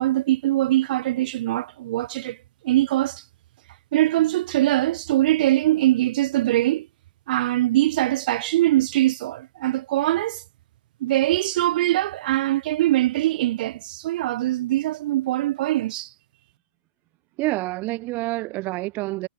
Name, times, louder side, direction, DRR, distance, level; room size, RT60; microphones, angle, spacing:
voice 1, 0.0-2.4 2.6-3.2 3.9-6.9 7.3-10.4 11.0-16.1, right 15 dB, 45° right, 2.1 m, -22 dB
voice 2, 17.4-19.3, right 21 dB, 25° right, 2.4 m, -27 dB
hypercardioid pair, 150°, 7 cm